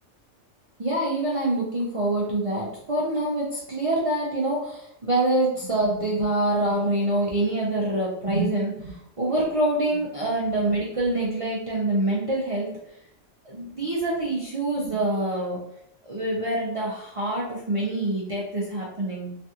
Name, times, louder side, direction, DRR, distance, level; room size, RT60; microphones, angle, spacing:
voice 1, 0.8-12.7 13.4-15.6 16.0-19.3, right 1 dB, 45° right, -6 dB, 0.4 m, -25 dB
3.3 x 2.3 x 2.7 m, 0.75 s
omnidirectional pair, 1.3 m